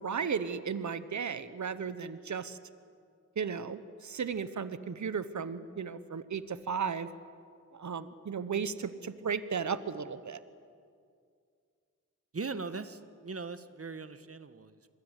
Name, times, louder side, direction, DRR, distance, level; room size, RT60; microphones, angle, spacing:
voice 1, 0.0-2.6 3.4-7.1 7.7-10.4, right 6 dB, 60° right, 13 dB, 1.2 m, -35 dB
voice 2, 12.3-14.9, right 4 dB, 45° right, 11 dB, 1.5 m, -40 dB
25.5 x 21.5 x 8.3 m, 2.2 s
cardioid pair, 55°, 32 cm